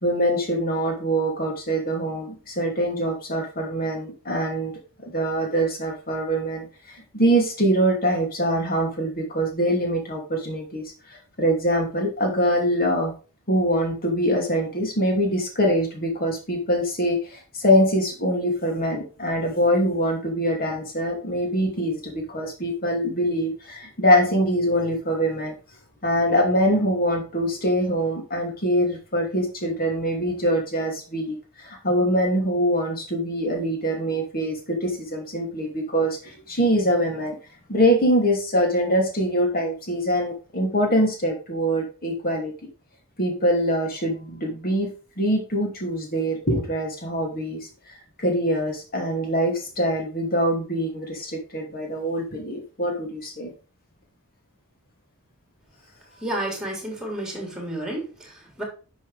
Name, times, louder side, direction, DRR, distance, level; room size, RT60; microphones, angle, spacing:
voice 1, 0.0-4.7 5.0-13.1 13.5-25.5 26.0-37.4 37.7-42.5 43.2-44.9 45.2-53.5, equal, 40° left, 2 dB, 2.6 m, -24 dB
voice 2, 56.2-58.6, right 1 dB, 5° right, -1 dB, 3.7 m, -31 dB
10.5 x 6.5 x 3.4 m, 0.35 s
head